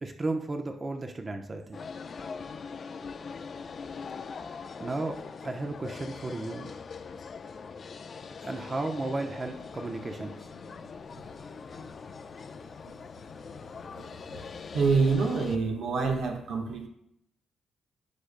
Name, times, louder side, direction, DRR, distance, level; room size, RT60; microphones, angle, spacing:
voice 1, 0.0-1.8 4.8-6.7 8.4-10.5, right 2 dB, 30° right, 4 dB, 0.8 m, -34 dB
sound 1, 1.7-15.6, left 5 dB, 50° left, 0.6 m, -42 dB
voice 2, 14.7-16.9, right 4 dB, 80° right, 2 dB, 1.3 m, -27 dB
15.0 x 5.1 x 2.2 m, 0.79 s
cardioid pair, 80°, 0 cm